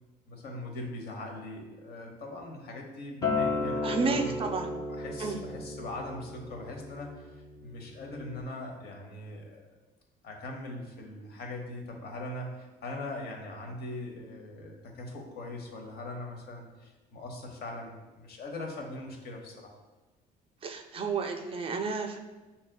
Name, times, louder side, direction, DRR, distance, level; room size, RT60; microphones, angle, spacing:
voice 1, 0.3-4.5 4.9-9.7 10.2-19.8, left 2 dB, 65° left, 1 dB, 0.8 m, -41 dB
Acoustic guitar, 3.2-8.4, left 3 dB, 20° left, 0.5 m, -34 dB
voice 2, 3.8-4.7 5.2-5.4 20.6-22.2, right 4 dB, 35° right, 4 dB, 0.4 m, -31 dB
6.0 x 2.7 x 2.2 m, 1.2 s
cardioid pair, 110°, 17 cm